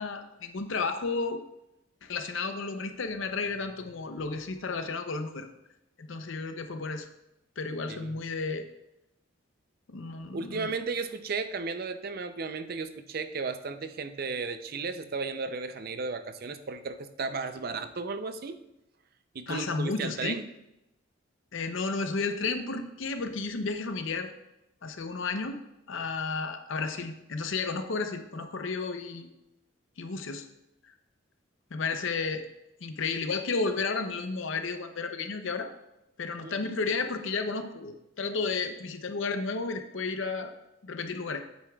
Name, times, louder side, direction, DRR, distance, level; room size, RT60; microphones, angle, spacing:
voice 1, 0.0-1.4 2.0-5.5 6.0-7.1 7.6-8.6 9.9-10.7 19.5-20.4 21.5-24.3 24.8-25.6 25.9-29.3 30.0-30.4 31.7-32.4 32.8-35.7 36.2-40.5 40.8-41.4, left 4 dB, 70° left, 7 dB, 0.6 m, -32 dB
voice 2, 10.3-18.6 19.3-20.4 36.4-36.6, right 4 dB, 50° right, 9 dB, 0.5 m, -34 dB
9.1 x 8.3 x 2.3 m, 0.90 s
head